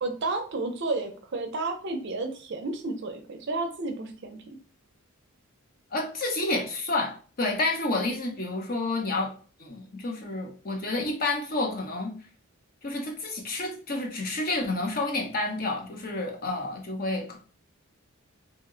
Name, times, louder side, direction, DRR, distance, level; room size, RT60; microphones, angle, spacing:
voice 1, 0.0-4.6, right 3 dB, 55° right, 6 dB, 0.5 m, -32 dB
voice 2, 5.9-9.3 9.6-12.1 12.8-17.4, left 2 dB, 40° left, 2 dB, 0.7 m, -29 dB
2.8 x 2.1 x 3.6 m, 0.40 s
head